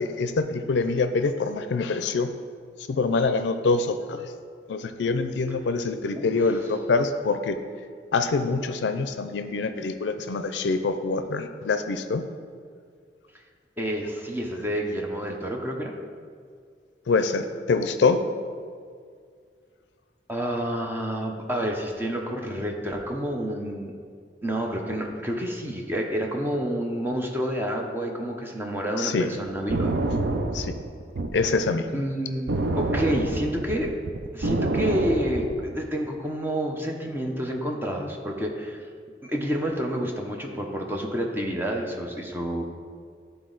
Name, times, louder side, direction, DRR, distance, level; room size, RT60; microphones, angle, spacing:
voice 1, 0.0-2.3 2.9-4.3 4.7-7.6 8.1-12.2 17.1-18.2 29.0-29.3 30.5-30.8 31.3-32.0, left 4 dB, 80° left, 9 dB, 0.4 m, -25 dB
voice 2, 6.2-6.5 13.8-16.0 20.3-23.9 24.4-30.0 31.9-33.9 34.3-38.8 39.2-42.6, equal, 10° right, 1 dB, 0.6 m, -29 dB
sound 1, 29.5-31.5 32.5-35.8, right 2 dB, 65° right, 0.5 m, -27 dB
11.5 x 3.9 x 3.9 m, 2.1 s
head